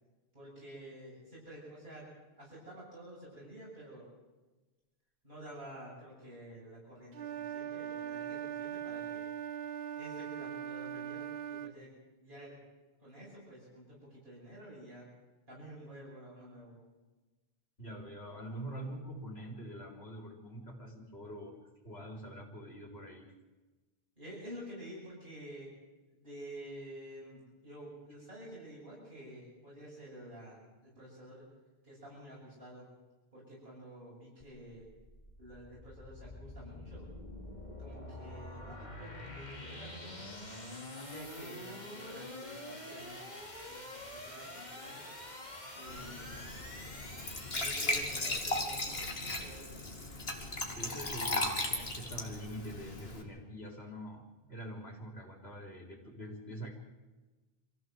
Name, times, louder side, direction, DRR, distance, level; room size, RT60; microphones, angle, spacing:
voice 1, 0.3-2.1 2.4-4.1 5.2-9.3 9.9-11.9 12.2-12.6 13.0-15.0 15.5-16.8 24.2-25.7 26.1-31.4 31.8-32.9 33.3-34.8 35.4-37.1 37.8-40.3 40.9-43.3 43.6-45.1 45.7-46.4 47.5-49.6, right 1 dB, 55° right, -7 dB, 8.3 m, -50 dB
Wind instrument woodwind instrument, 7.1-11.8, right 9 dB, 80° right, 1.1 m, -40 dB
voice 2, 17.8-21.6 21.8-23.3 50.8-56.7, equal, 90° left, 0 dB, 4.5 m, -45 dB
sound 1, 34.4-48.6, left 1 dB, 45° left, 3.1 m, -46 dB
Glass / Trickle dribble / Fill (with liquid), 45.9-53.2, left 2 dB, 75° left, 2.7 m, -37 dB
24.5 x 15.5 x 7.9 m, 1.2 s
omnidirectional pair, 1.0 m